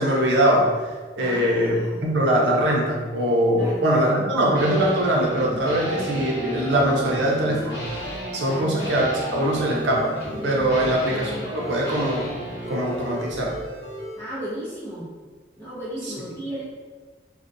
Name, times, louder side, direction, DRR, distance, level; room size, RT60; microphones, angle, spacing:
voice 1, 0.0-7.8 8.3-10.1 10.4-12.3 12.7-13.6 16.0-16.1, right 1 dB, 75° right, -2 dB, 0.6 m, -22 dB
voice 2, 1.2-2.1 3.6-3.8 5.7-5.8 8.4-8.7 10.7-10.9 14.2-15.1 15.6-16.6, right 1 dB, 10° left, -10 dB, 0.5 m, -34 dB
sound 1, 4.5-13.2, equal, 85° left, 0.9 m, -34 dB
sound 2, 7.0-14.2, equal, 50° right, 1.0 m, -37 dB
2.4 x 2.1 x 2.6 m, 1.4 s
head